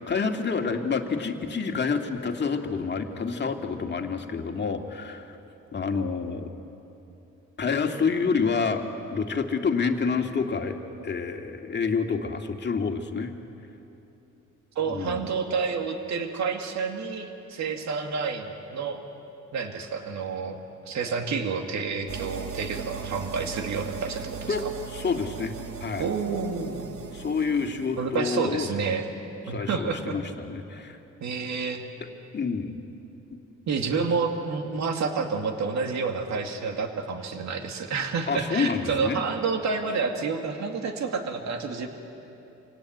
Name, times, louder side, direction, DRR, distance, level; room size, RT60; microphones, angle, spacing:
voice 1, 0.0-5.4 5.7-6.5 7.6-10.8 11.0-13.3 14.9-15.2 24.5-25.5 25.8-26.1 27.1-28.7 29.5-31.0 32.3-32.8 38.3-39.2, left 5 dB, 35° left, 4 dB, 2.1 m, -28 dB
voice 2, 14.8-19.0 19.5-24.6 26.0-26.9 28.0-29.1 29.5-30.2 31.2-31.8 33.7-41.9, right 5 dB, 65° right, 4 dB, 2.3 m, -29 dB
sound 1, 22.1-28.1, right 7 dB, 50° right, 1.4 m, -38 dB
27.0 x 17.5 x 9.3 m, 2.9 s
cardioid pair, 90°, 30 cm